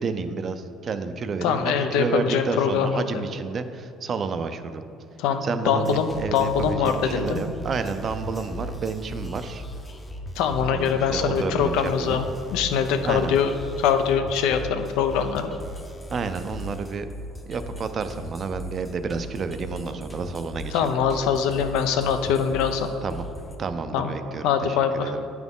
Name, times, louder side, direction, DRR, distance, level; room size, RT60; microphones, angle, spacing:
voice 1, 0.0-4.8 5.4-9.6 10.7-12.2 13.0-13.3 16.1-17.1 17.5-20.9 23.0-23.2 23.6-25.2, right 5 dB, 30° right, 10 dB, 0.4 m, -30 dB
voice 2, 1.4-3.2 5.2-7.5 10.4-12.2 12.5-13.5 13.8-15.5 20.7-22.9 23.9-24.1 24.4-25.1, left 7 dB, 85° left, 7 dB, 0.6 m, -23 dB
sound 1, 5.8-23.5, equal, 10° left, 0.6 m, -38 dB
8.9 x 6.1 x 3.6 m, 2.6 s
cardioid pair, 155°, 0 cm